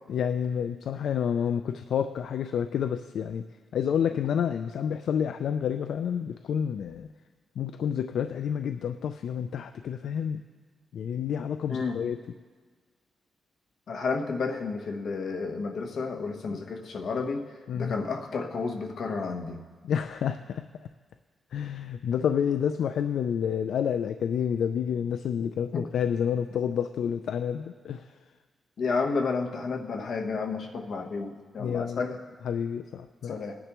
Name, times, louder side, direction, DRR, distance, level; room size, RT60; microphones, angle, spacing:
voice 1, 0.1-3.5 3.7-7.1 7.6-10.4 10.9-12.2 17.7-17.9 19.8-20.6 21.5-28.1 31.6-32.0 32.4-33.3, left 8 dB, 85° left, 9 dB, 0.4 m, -29 dB
voice 2, 11.7-12.0 13.9-19.6 25.7-25.9 28.8-32.2 33.2-33.6, left 4 dB, 65° left, 3 dB, 1.1 m, -31 dB
19.5 x 10.0 x 3.0 m, 1.5 s
wide cardioid pair, 120°, 0 cm